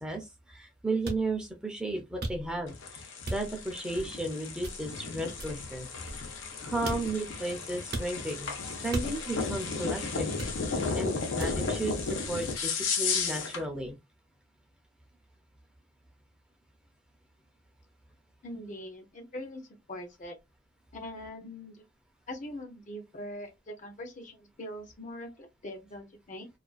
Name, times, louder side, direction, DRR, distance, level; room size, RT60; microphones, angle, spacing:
voice 1, 0.0-3.0 3.3-5.9 6.6-10.3 10.9-14.0, right 2 dB, 5° right, 0.5 m, -34 dB
sound 1, 1.0-1.2 2.2-2.7 3.3-3.7 4.6-5.0 5.4-6.5 6.9-7.3 7.9-8.2 8.9-9.4 10.4-10.8 11.4-11.8 12.4-12.6, right 2 dB, 55° right, 0.6 m, -37 dB
sound 2, 2.7-13.6, left 4 dB, 85° left, 0.7 m, -34 dB
voice 2, 18.4-20.4 20.9-21.8 22.3-26.5, left 1 dB, 40° left, 0.6 m, -42 dB
2.4 x 2.3 x 2.3 m
head